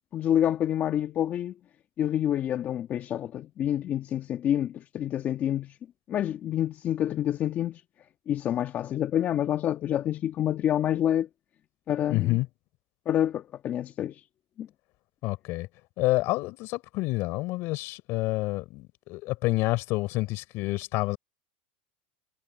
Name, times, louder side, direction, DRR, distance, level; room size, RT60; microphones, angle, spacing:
voice 1, 0.1-1.5 2.0-5.8 6.1-7.8 8.3-11.3 11.9-12.4 13.0-14.2 14.6-14.7, left 11 dB, 35° left, 1.4 m, -27 dB
voice 2, 12.1-12.5 15.2-15.7 16.0-21.2, left 20 dB, 55° left, 3.9 m, -28 dB
supercardioid pair, 125°, 5 cm